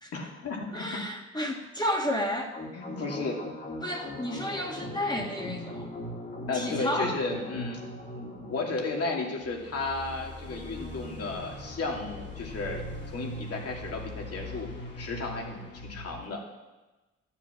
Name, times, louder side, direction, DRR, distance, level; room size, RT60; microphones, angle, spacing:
voice 1, 0.1-0.8 2.7-3.4 6.5-7.8 8.1-12.8 13.1-14.7 14.9-15.6 15.9-16.4, left 3 dB, 50° left, 0 dB, 2.6 m, -33 dB
voice 2, 0.7-2.5 3.8-5.9 6.5-7.2, left 1 dB, 15° left, 0 dB, 1.9 m, -31 dB
sound 1, 2.5-16.2, left 1 dB, 35° left, 2.6 m, -40 dB
12.5 x 7.3 x 5.8 m, 1.1 s
cardioid pair, 90°, 30 cm